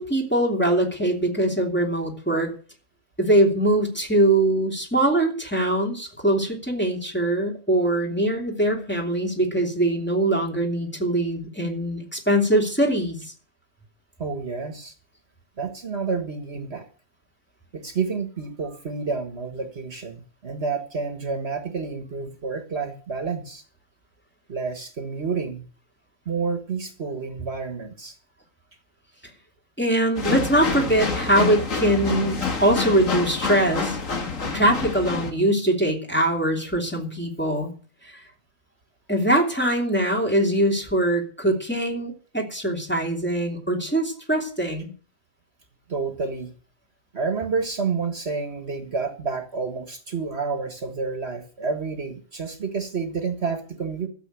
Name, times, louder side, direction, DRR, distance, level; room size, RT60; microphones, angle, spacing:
voice 1, 0.0-2.5 3.2-13.3 29.8-34.0 34.5-37.7 38.0-38.2 39.1-44.9, right 1 dB, 10° left, 0 dB, 3.0 m, -22 dB
voice 2, 14.2-14.9 15.6-16.9 17.7-23.6 24.5-25.7 26.3-28.2 32.4-32.5 45.9-46.5 47.1-54.1, right 5 dB, 55° right, 7 dB, 1.8 m, -29 dB
sound 1, 30.2-35.3, left 4 dB, 80° left, 2.2 m, -27 dB
13.0 x 7.6 x 9.0 m, 0.41 s
omnidirectional pair, 1.3 m